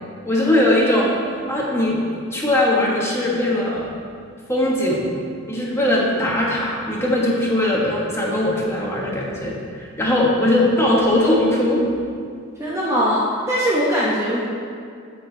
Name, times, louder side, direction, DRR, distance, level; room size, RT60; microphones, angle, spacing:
voice 1, 0.2-2.0 2.3-3.9 4.5-5.1 5.5-11.8, left 1 dB, 15° left, -5 dB, 1.3 m, -20 dB
voice 2, 12.6-14.4, equal, 15° right, -7 dB, 0.8 m, -21 dB
7.6 x 7.1 x 4.0 m, 2.2 s
head